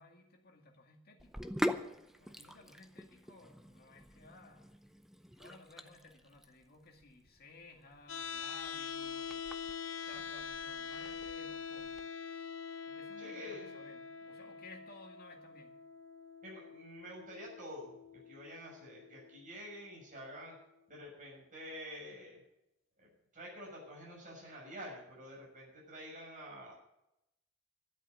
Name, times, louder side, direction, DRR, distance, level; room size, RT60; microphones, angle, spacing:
voice 1, 0.0-1.6 2.2-4.8 5.4-9.3 10.1-12.0 12.9-15.8, left 3 dB, 50° left, 3 dB, 2.1 m, -57 dB
Sink (filling or washing), 1.2-12.0, equal, ahead, 0.6 m, -44 dB
sound 1, 8.1-20.1, left 6 dB, 70° left, 1.0 m, -45 dB
voice 2, 13.2-13.8 16.4-18.0 18.2-20.5 20.9-22.4 23.0-26.7, equal, 40° right, -3 dB, 6.5 m, -48 dB
12.5 x 8.2 x 8.4 m, 0.87 s
head